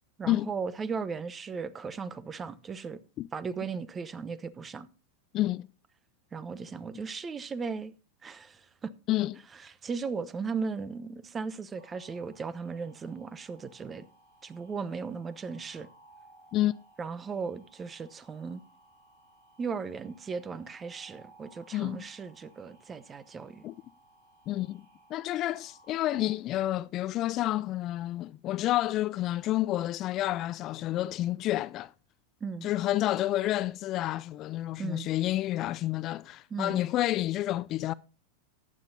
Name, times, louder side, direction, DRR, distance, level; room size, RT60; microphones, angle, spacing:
voice 1, 0.2-3.0 3.3-4.9 6.3-7.9 8.2-8.9 9.6-14.1 14.4-15.9 17.0-18.6 19.6-23.6 32.4-32.7 34.8-35.1 36.5-36.8, right 5 dB, 20° right, 0.8 m, -37 dB
voice 2, 5.3-5.7 9.1-9.5 16.5-16.7 21.7-22.1 23.6-23.7 24.5-24.8 25.1-31.9 32.6-37.9, left 15 dB, 40° left, 0.4 m, -29 dB
sound 1, 11.8-26.3, right 2 dB, 75° right, 4.7 m, -60 dB
14.5 x 9.6 x 2.7 m
hypercardioid pair, 90°, 0 cm